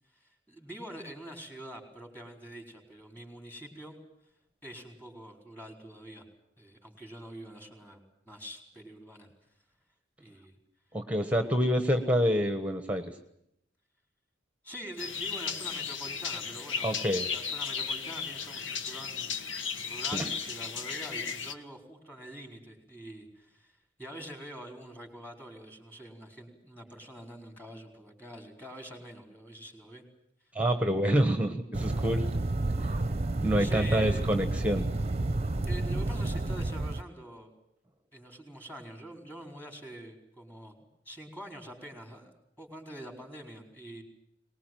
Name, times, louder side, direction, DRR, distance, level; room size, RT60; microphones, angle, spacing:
voice 1, 0.1-4.0 4.6-6.2 6.6-9.3 10.2-10.6 14.6-17.0 17.3-19.3 19.8-30.0 33.6-34.3 35.7-37.5 38.1-42.3 42.6-44.0, right 1 dB, 10° left, 3 dB, 4.3 m, -45 dB
voice 2, 10.9-13.1 16.8-17.3 20.1-20.2 30.5-32.3 33.4-34.9, equal, 5° right, 9 dB, 1.3 m, -27 dB
sound 1, 15.0-21.5, left 6 dB, 75° left, 1.4 m, -35 dB
sound 2, 31.7-37.0, right 2 dB, 35° right, 0.9 m, -30 dB
22.5 x 20.0 x 9.2 m, 0.76 s
head